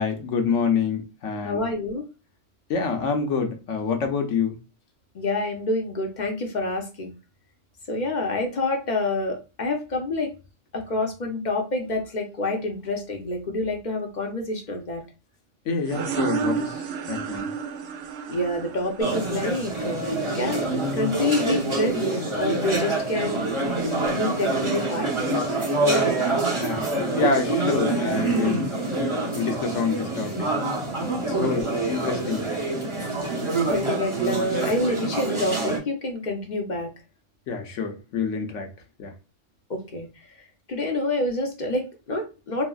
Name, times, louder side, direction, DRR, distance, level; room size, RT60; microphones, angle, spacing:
voice 1, 0.0-1.7 2.7-4.6 15.7-17.5 26.6-28.7 29.3-30.5 31.2-32.5 37.5-38.7 39.0-39.1, left 5 dB, 75° left, 1.1 m, -27 dB
voice 2, 1.4-2.0 5.1-7.1 7.9-10.3 10.7-15.0 18.3-20.7 20.9-23.5 24.1-25.4 31.3-31.7 33.1-33.2 33.7-36.9 39.7-40.1 40.7-42.6, left 2 dB, 50° left, 0.6 m, -27 dB
sound 1, 15.8-21.2, right 6 dB, 65° right, 0.7 m, -32 dB
sound 2, 19.0-35.8, right 2 dB, 30° right, 0.7 m, -26 dB
4.1 x 2.0 x 2.2 m
omnidirectional pair, 1.3 m